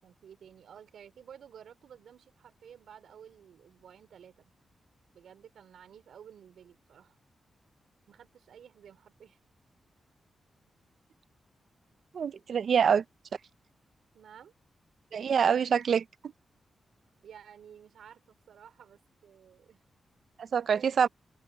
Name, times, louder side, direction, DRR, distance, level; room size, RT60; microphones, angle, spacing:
voice 1, 0.0-4.5 5.1-7.2 8.1-9.4 14.1-14.5 17.2-19.8 20.7-21.1, right 8 dB, 85° right, 5.0 m, -53 dB
voice 2, 12.1-13.0 15.1-16.0 20.4-21.1, right 7 dB, 65° right, 0.6 m, -25 dB
open air
wide cardioid pair, 105°, 0 cm